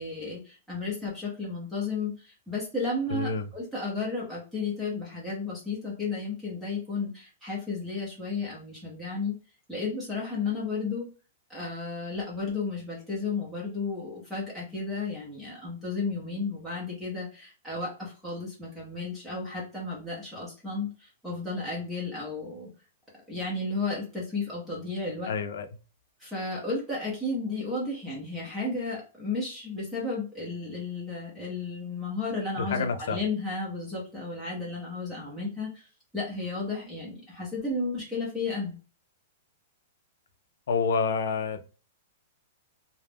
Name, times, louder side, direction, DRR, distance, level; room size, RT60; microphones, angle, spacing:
voice 1, 0.0-9.3 9.7-11.1 11.5-22.7 23.3-25.3 26.2-35.9 36.1-38.7, left 3 dB, 5° right, 0.7 m, -33 dB
voice 2, 3.1-3.4 25.3-25.7 32.6-33.2 40.7-41.6, left 5 dB, 70° left, 0.5 m, -28 dB
2.4 x 2.0 x 3.3 m
supercardioid pair, 180°, 0 cm